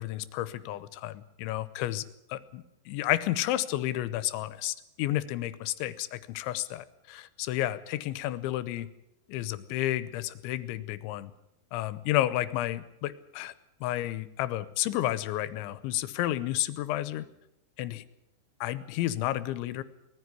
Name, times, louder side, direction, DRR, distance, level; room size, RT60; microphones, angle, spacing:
voice 1, 0.0-2.0 2.3-8.9 9.3-11.3 11.7-13.5 13.8-17.3 17.8-18.0 18.6-19.8, left 14 dB, 90° left, 15 dB, 3.3 m, -31 dB
19.5 x 14.5 x 9.5 m, 0.86 s
omnidirectional pair, 5.2 m